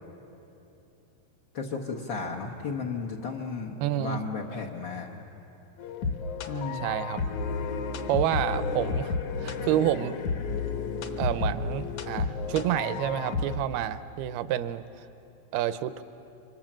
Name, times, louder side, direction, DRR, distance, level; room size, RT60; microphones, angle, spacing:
voice 1, 1.5-5.2 6.5-6.9, left 4 dB, 80° left, -1 dB, 1.0 m, -34 dB
voice 2, 3.8-4.2 6.7-7.2 8.1-9.2 9.4-10.1 11.2-14.8 15.5-16.0, right 12 dB, 80° right, 13 dB, 2.5 m, -28 dB
sound 1, 5.8-13.6, left 4 dB, 60° left, 2.1 m, -31 dB
27.5 x 25.0 x 7.5 m, 3.0 s
omnidirectional pair, 4.6 m